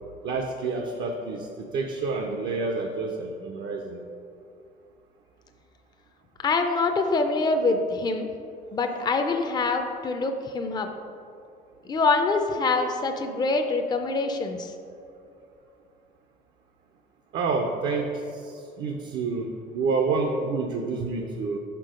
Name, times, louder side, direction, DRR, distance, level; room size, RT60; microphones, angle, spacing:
voice 1, 0.2-4.0 17.3-21.6, right 4 dB, 65° right, 3 dB, 0.6 m, -28 dB
voice 2, 6.4-8.3 8.7-10.9 11.8-14.7, left 3 dB, 25° left, 5 dB, 0.5 m, -25 dB
5.5 x 4.6 x 4.9 m, 2.5 s
cardioid pair, 110°, 17 cm